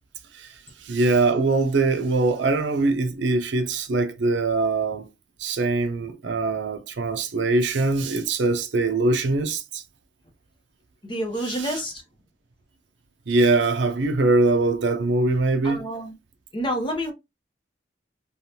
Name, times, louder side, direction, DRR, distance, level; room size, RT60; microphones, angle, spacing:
voice 1, 0.8-5.1 5.4-9.8 11.5-11.8 13.3-15.8, right 3 dB, 70° right, 0.5 m, -22 dB
voice 2, 11.0-12.0 15.6-16.1 16.5-17.1, equal, 25° left, 0.7 m, -28 dB
3.3 x 2.3 x 2.7 m
head